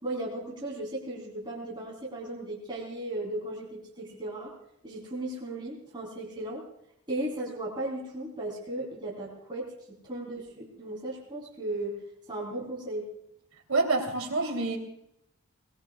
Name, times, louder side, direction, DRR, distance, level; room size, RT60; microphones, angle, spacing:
voice 1, 0.0-4.5 4.8-6.6 7.1-9.7 10.0-11.9 12.3-13.1, right 1 dB, 20° right, -5 dB, 3.8 m, -36 dB
voice 2, 13.7-14.8, right 3 dB, 70° right, 3 dB, 3.4 m, -27 dB
22.5 x 21.0 x 2.4 m, 0.78 s
head